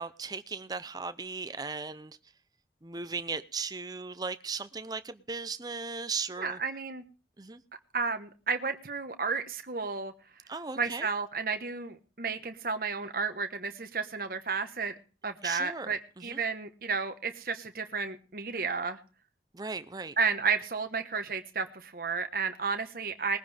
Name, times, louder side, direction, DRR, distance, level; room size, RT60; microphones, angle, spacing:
voice 1, 0.0-2.2 2.8-6.6 7.4-7.6 10.5-11.1 15.4-16.4 19.5-20.2, right 4 dB, 20° right, 0.6 m, -37 dB
voice 2, 6.4-7.0 7.9-10.1 10.8-14.9 15.2-19.0 20.2-23.4, right 5 dB, 55° right, 1.2 m, -32 dB
20.5 x 10.0 x 3.4 m
head